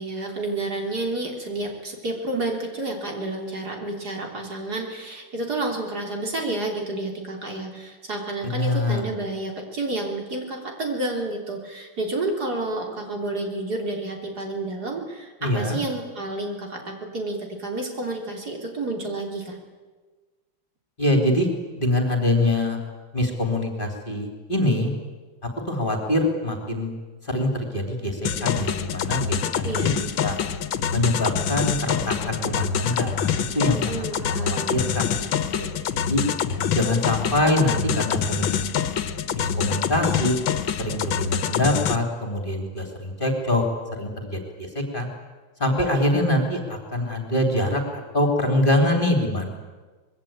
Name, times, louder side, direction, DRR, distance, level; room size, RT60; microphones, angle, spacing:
voice 1, 0.0-19.6 29.6-30.1 33.9-34.9, right 2 dB, 55° right, 1 dB, 4.1 m, -30 dB
voice 2, 8.5-9.0 15.4-15.8 21.0-21.5 21.8-22.8 23.1-24.9 25.7-26.9 27.2-29.9 30.2-30.4 30.9-35.3 35.6-36.2 36.7-38.6 39.3-40.3 40.8-43.6 44.0-45.1 45.6-49.5, left 1 dB, 25° left, 3 dB, 3.3 m, -24 dB
sound 1, 28.2-42.0, left 7 dB, 80° left, 1.9 m, -26 dB
25.0 x 21.5 x 8.8 m, 1.3 s
omnidirectional pair, 2.1 m